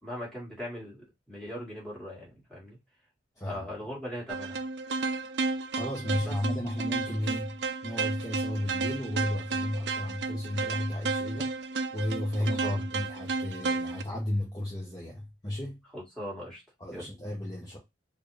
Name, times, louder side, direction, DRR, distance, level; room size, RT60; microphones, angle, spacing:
voice 1, 0.0-2.8 3.4-4.7 6.2-6.4 12.4-12.8 15.9-16.6 16.9-17.1, equal, 5° left, 2.1 m, -40 dB
voice 2, 3.4-3.7 5.7-7.5 7.8-11.5 11.9-15.8 16.8-17.8, left 1 dB, 20° left, 1.0 m, -33 dB
sound 1, 4.3-14.0, right 3 dB, 65° right, 0.4 m, -33 dB
4.3 x 2.5 x 3.2 m
head